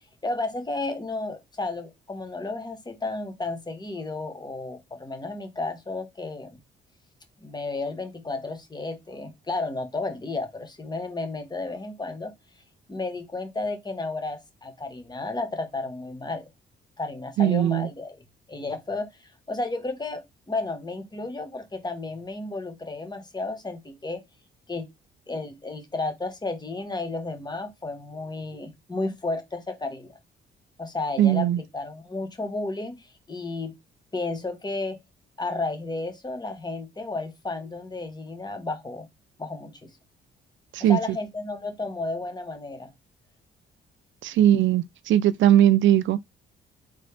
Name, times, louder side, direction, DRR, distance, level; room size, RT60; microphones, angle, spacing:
voice 1, 0.2-6.6 7.4-12.3 12.9-16.5 17.0-18.2 18.5-24.2 24.7-24.9 25.3-30.2 30.8-33.7 34.1-35.0 35.4-39.1 39.4-39.9 40.9-42.9, left 3 dB, 20° left, 1.5 m, -32 dB
voice 2, 17.4-17.9 31.2-31.6 40.7-41.0 44.2-46.2, right 11 dB, 70° right, 0.5 m, -19 dB
3.9 x 3.5 x 3.4 m
cardioid pair, 90°, 20 cm